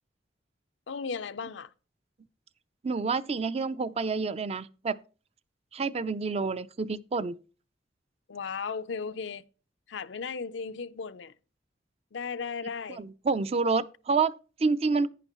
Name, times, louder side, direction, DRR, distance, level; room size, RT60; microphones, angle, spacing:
voice 1, 0.9-1.7 8.3-9.4 9.9-11.3 12.1-13.0, left 5 dB, 80° left, 0.5 m, -35 dB
voice 2, 2.8-5.0 5.7-7.4 13.0-15.1, right 4 dB, 35° right, 0.4 m, -28 dB
11.0 x 9.8 x 3.0 m
head